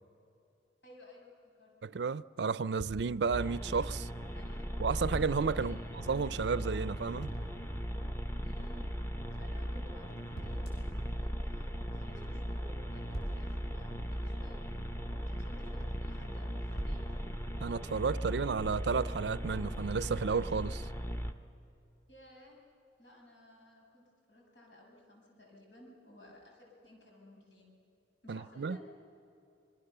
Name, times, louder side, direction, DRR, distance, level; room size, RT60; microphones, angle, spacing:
voice 1, 0.8-1.3 1.6-2.0 4.3-4.6 5.6-5.8 8.4-9.0 9.4-14.7 15.2-17.1 22.1-22.6 23.0-24.0 24.3-27.8 28.2-28.8, left 1 dB, 85° left, 6.9 m, -56 dB
voice 2, 1.8-4.1 4.8-5.8 6.1-7.3 17.6-20.9 28.3-28.8, right 5 dB, 70° right, 0.4 m, -32 dB
sound 1, 2.8-3.6 5.1-5.7 7.2-7.8 10.4-11.0 13.1-14.5 16.8-17.6, right 1 dB, 70° left, 6.0 m, -43 dB
sound 2, 3.3-21.3, equal, 15° left, 0.8 m, -38 dB
27.0 x 21.5 x 6.7 m
head